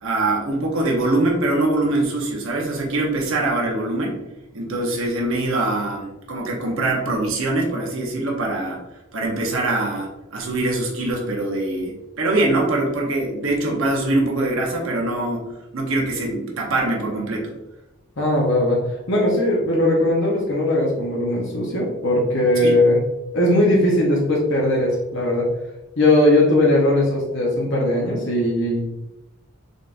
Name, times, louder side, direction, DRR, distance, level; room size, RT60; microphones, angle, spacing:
voice 1, 0.0-4.2 4.5-8.8 9.1-15.4 15.7-17.5 22.6-22.7, right 2 dB, 65° right, -1 dB, 0.8 m, -23 dB
voice 2, 18.2-18.8 19.1-23.0 23.3-25.5 26.0-28.8, left 1 dB, 55° left, -3 dB, 0.8 m, -19 dB
3.9 x 3.5 x 2.5 m, 0.97 s
head